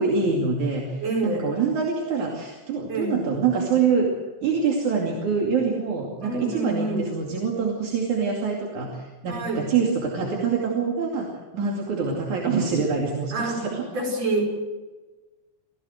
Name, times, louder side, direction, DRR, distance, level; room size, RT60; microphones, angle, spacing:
voice 1, 0.0-4.1 4.4-13.9, right 5 dB, 75° right, -1 dB, 4.0 m, -25 dB
voice 2, 1.0-1.5 2.9-3.2 6.2-7.1 9.3-9.7 13.3-13.6 13.9-14.5, right 2 dB, 55° right, 0 dB, 6.5 m, -27 dB
26.0 x 16.0 x 7.9 m, 1.3 s
omnidirectional pair, 3.4 m